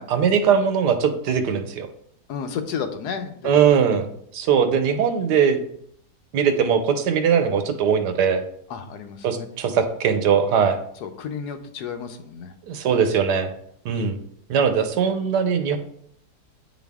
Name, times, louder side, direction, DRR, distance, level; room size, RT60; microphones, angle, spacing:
voice 1, 0.1-1.9 3.4-5.6 6.3-8.4 9.2-10.8 12.7-13.5 13.8-14.2 14.5-15.8, right 7 dB, 80° right, 8 dB, 1.4 m, -20 dB
voice 2, 2.3-3.5 8.7-9.8 11.0-12.5, left 6 dB, 75° left, 7 dB, 1.3 m, -32 dB
9.3 x 4.1 x 3.5 m, 0.69 s
omnidirectional pair, 1.8 m